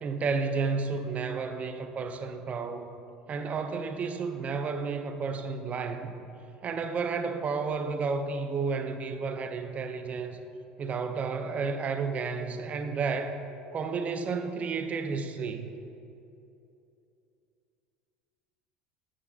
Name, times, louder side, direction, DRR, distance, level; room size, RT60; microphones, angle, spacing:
voice 1, 0.0-2.9 3.3-6.1 6.6-10.4 10.8-13.4 13.7-15.7, right 4 dB, 35° right, 8 dB, 0.5 m, -31 dB
8.6 x 5.3 x 2.4 m, 2.8 s
hypercardioid pair, 80°, 4 cm